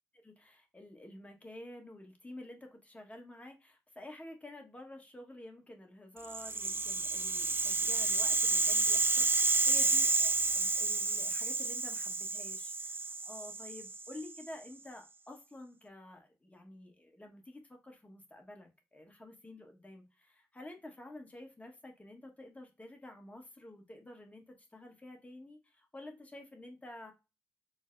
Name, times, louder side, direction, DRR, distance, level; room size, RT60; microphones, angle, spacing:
voice 1, 0.1-27.1, left 1 dB, 20° left, 1.2 m, -50 dB
Rattle (instrument), 6.2-14.4, right 3 dB, 30° right, 0.4 m, -30 dB
6.2 x 2.1 x 2.5 m
cardioid pair, 60°, 7 cm